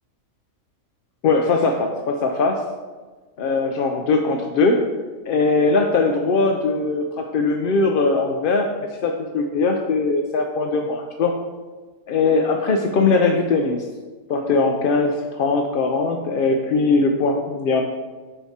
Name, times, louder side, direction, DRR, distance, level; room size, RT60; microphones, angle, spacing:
voice 1, 1.2-2.6 3.4-4.8 5.3-8.7 9.0-11.3 12.1-13.9 14.3-17.8, left 3 dB, 60° left, 3 dB, 0.5 m, -20 dB
13.5 x 4.6 x 2.8 m, 1.3 s
omnidirectional pair, 1.5 m